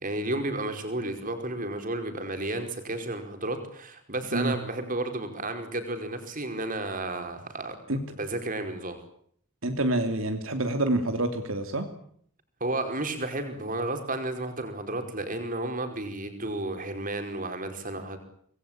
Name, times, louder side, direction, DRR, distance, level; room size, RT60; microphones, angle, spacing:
voice 1, 0.0-7.7 8.1-9.0 12.6-18.2, right 2 dB, 40° right, 7 dB, 4.9 m, -32 dB
voice 2, 9.6-11.9, right 1 dB, 70° right, 7 dB, 3.0 m, -27 dB
26.5 x 20.5 x 9.0 m, 0.65 s
head